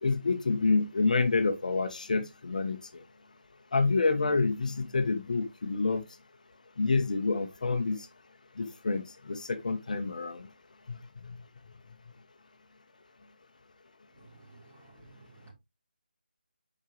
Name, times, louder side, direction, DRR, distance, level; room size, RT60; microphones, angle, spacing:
voice 1, 0.0-2.8 3.7-6.0 6.8-8.1 8.6-10.5, left 3 dB, 45° left, 0.9 m, -28 dB
voice 2, 14.1-15.5, right 2 dB, 15° right, 2.9 m, -55 dB
8.7 x 5.0 x 3.2 m
figure-of-eight pair, 170°, 6 cm